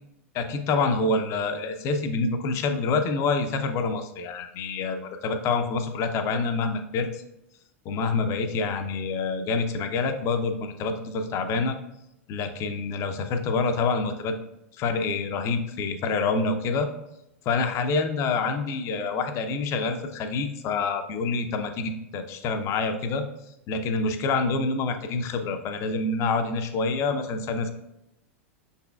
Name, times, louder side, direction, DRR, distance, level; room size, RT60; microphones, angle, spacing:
voice 1, 0.3-7.2 7.8-11.8 12.3-14.4 14.8-16.9 17.5-23.2 23.7-27.7, left 4 dB, 40° left, 7 dB, 0.6 m, -27 dB
5.4 x 4.1 x 2.4 m, 0.86 s
hypercardioid pair, 95°, 8 cm